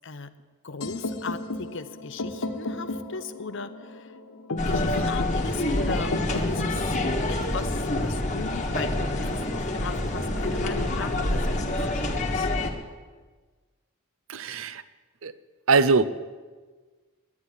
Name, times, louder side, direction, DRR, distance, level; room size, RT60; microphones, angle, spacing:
voice 1, 0.6-4.2 4.6-7.0 7.3-12.5, left 4 dB, 55° left, 11 dB, 0.7 m, -38 dB
sound 1, 0.8-8.7, left 2 dB, 80° left, 1.2 m, -34 dB
sound 2, 4.6-12.7, left 1 dB, 35° left, 1.4 m, -27 dB
voice 2, 14.3-14.8 15.2-15.3 15.7-16.1, right 4 dB, 65° right, 14 dB, 0.6 m, -21 dB
11.0 x 10.0 x 9.8 m, 1.4 s
head